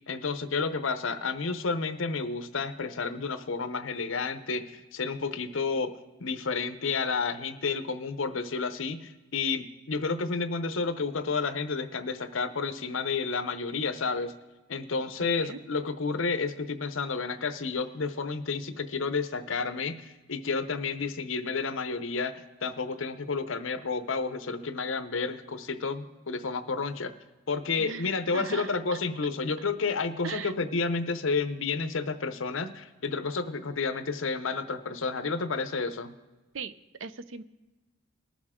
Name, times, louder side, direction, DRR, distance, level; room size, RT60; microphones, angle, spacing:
voice 1, 0.1-5.9 6.2-14.3 14.7-27.1 27.5-36.1, left 4 dB, 70° left, 10 dB, 0.7 m, -31 dB
voice 2, 15.2-15.6 27.8-28.7 30.2-30.5 36.5-36.7 37.0-37.4, right 5 dB, 65° right, 13 dB, 0.5 m, -38 dB
20.0 x 7.1 x 3.6 m, 1.2 s
head